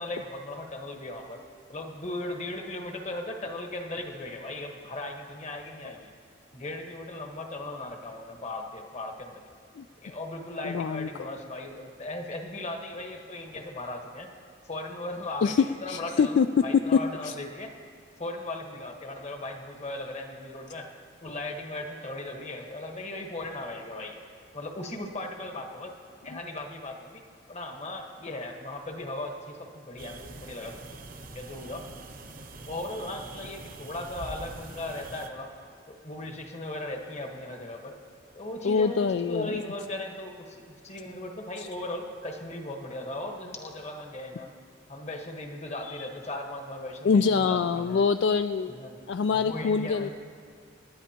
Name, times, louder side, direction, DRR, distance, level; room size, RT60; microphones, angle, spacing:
voice 1, 0.0-1.4 1.7-6.1 6.5-9.4 10.0-14.3 14.6-17.7 18.2-20.9 21.2-24.2 24.5-25.9 26.2-27.2 27.5-31.0 31.3-31.8 32.7-35.5 35.9-37.9 38.3-44.5 44.9-48.1 48.7-49.0 49.3-50.1, left 2 dB, 35° left, 3 dB, 1.3 m, -37 dB
voice 2, 10.6-11.3 15.4-16.5 17.2-17.3 38.6-39.5 47.0-48.7 49.1-50.1, left 5 dB, 65° left, 10 dB, 0.3 m, -25 dB
sound 1, 30.0-35.3, right 2 dB, 50° right, 0.8 m, -44 dB
27.0 x 11.0 x 2.9 m, 2.1 s
head